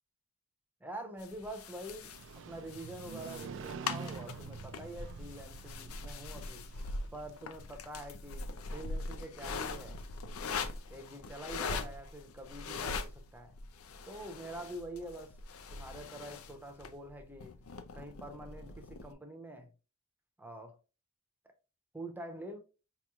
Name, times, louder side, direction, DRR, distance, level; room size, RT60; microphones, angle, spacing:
voice 1, 0.8-2.1 2.5-6.6 7.1-10.0 10.9-13.6 14.1-15.3 15.7-17.6 17.9-19.7 20.4-20.8 21.9-22.6, right 1 dB, 10° right, 0.7 m, -46 dB
sound 1, 1.2-19.1, left 4 dB, 80° left, 0.5 m, -42 dB
Motorcycle, 1.8-7.8, right 6 dB, 60° right, 0.4 m, -47 dB
5.1 x 3.0 x 2.3 m
head